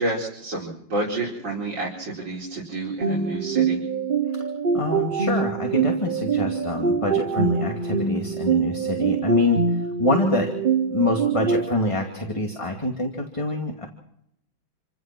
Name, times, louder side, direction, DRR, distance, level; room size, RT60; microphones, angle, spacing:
voice 1, 0.0-3.8, right 2 dB, 60° right, -4 dB, 5.5 m, -29 dB
sound 1, 3.0-11.7, right 5 dB, 40° right, 0.8 m, -24 dB
voice 2, 4.7-10.5 10.9-13.9, left 2 dB, 15° left, 2 dB, 2.4 m, -25 dB
28.5 x 16.0 x 6.2 m, 0.76 s
omnidirectional pair, 2.2 m